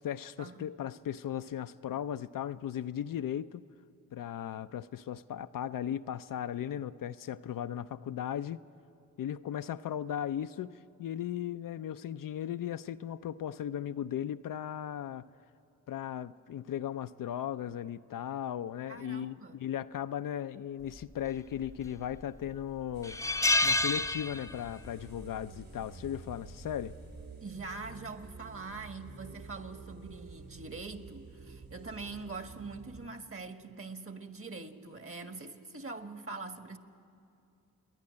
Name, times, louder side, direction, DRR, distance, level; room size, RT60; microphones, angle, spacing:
voice 1, 0.0-3.6 4.1-8.6 9.2-15.3 15.9-23.2 23.6-27.0, left 10 dB, 60° left, 0.6 m, -37 dB
voice 2, 18.9-19.6 27.4-36.8, right 3 dB, 35° right, 1.6 m, -43 dB
sound 1, 21.6-22.2 22.5-22.6 23.0-24.9 25.1-25.4 26.6-26.9, left 2 dB, 10° left, 0.6 m, -29 dB
sound 2, 22.9-33.1, right 4 dB, 65° right, 3.0 m, -50 dB
29.0 x 10.5 x 9.7 m
supercardioid pair, 40°, 37 cm